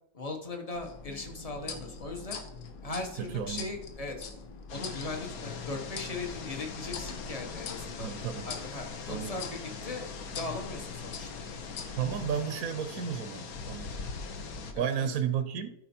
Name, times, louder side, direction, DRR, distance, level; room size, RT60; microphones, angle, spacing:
voice 1, 0.1-2.4 2.8-4.2 4.7-8.1 8.5-11.4 14.7-15.1, left 2 dB, 25° left, 4 dB, 0.9 m, -39 dB
sound 1, 0.7-12.4, left 5 dB, 80° left, 1.7 m, -44 dB
voice 2, 3.2-3.7 8.0-8.5 9.1-9.4 11.9-14.0 14.8-15.7, right 8 dB, 60° right, 9 dB, 1.0 m, -32 dB
sound 2, 4.7-14.7, left 5 dB, 55° left, 1.3 m, -41 dB
13.5 x 4.8 x 4.4 m, 0.78 s
omnidirectional pair, 2.1 m